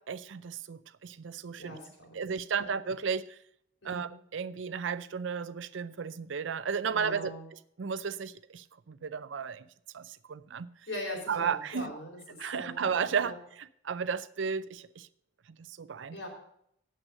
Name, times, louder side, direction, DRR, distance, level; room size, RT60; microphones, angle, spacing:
voice 1, 0.1-1.8 2.1-3.4 3.8-7.3 7.8-9.7 9.9-10.7 11.3-11.9 12.4-15.1 15.7-16.2, right 6 dB, 75° right, 0.5 m, -34 dB
voice 2, 1.6-2.8 3.8-4.2 6.9-7.4 10.9-12.9 13.2-13.4 16.1-16.3, left 1 dB, 80° left, 4.3 m, -41 dB
8.9 x 7.7 x 6.4 m
head